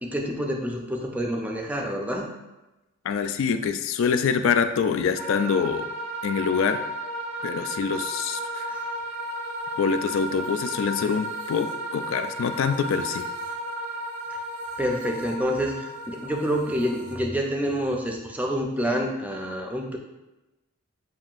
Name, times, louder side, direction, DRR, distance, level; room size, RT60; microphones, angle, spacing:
voice 1, 0.0-2.2 8.7-8.8 14.8-20.0, equal, 5° right, 1 dB, 0.4 m, -27 dB
voice 2, 3.0-5.9 6.2-6.8 7.4-8.7 9.8-13.3, left 6 dB, 65° left, 9 dB, 0.3 m, -25 dB
sound 1, 5.1-17.2, right 1 dB, 90° right, 0.8 m, -34 dB
7.2 x 2.6 x 2.4 m, 1.0 s
head